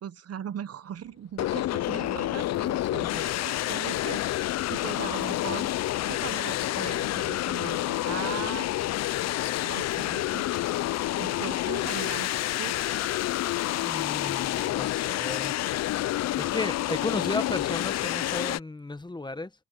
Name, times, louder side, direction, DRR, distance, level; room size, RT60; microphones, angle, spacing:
voice 1, 0.0-4.2 4.7-5.7 6.1-8.7 9.6-10.5 11.2-12.3 12.6-12.8, right 9 dB, 55° right, 1.2 m, -39 dB
sound 1, 1.4-18.6, left 14 dB, 60° left, 0.5 m, -28 dB
sound 2, 1.8-3.8 4.4-13.3, right 11 dB, 75° right, 6.3 m, -63 dB
voice 2, 13.8-15.6 16.1-19.5, left 2 dB, 15° left, 1.2 m, -34 dB
cardioid pair, 90°, 30 cm